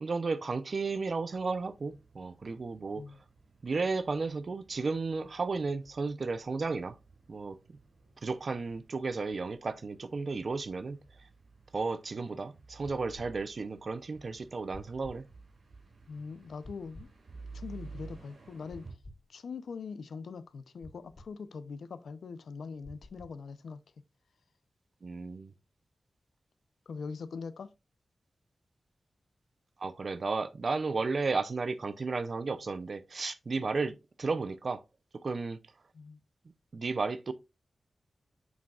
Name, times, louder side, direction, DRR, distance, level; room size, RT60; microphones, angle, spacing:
voice 1, 0.0-3.0 3.6-7.0 7.3-7.6 8.2-11.0 11.7-15.2 25.0-25.5 29.8-34.8 35.2-35.6 36.7-37.3, right 4 dB, 55° right, 0.6 m, -33 dB
sound 1, 0.7-18.9, right 4 dB, 80° right, 2.8 m, -54 dB
sound 2, 12.8-13.3 14.7-15.2 16.6-17.1 18.7-19.3 20.8-21.3 22.8-23.4, left 1 dB, 55° left, 2.5 m, -50 dB
voice 2, 16.1-17.1 17.5-18.8 19.3-23.8 26.9-27.7 35.9-36.2, left 5 dB, 90° left, 0.6 m, -42 dB
7.3 x 6.1 x 2.4 m
wide cardioid pair, 80°, 0 cm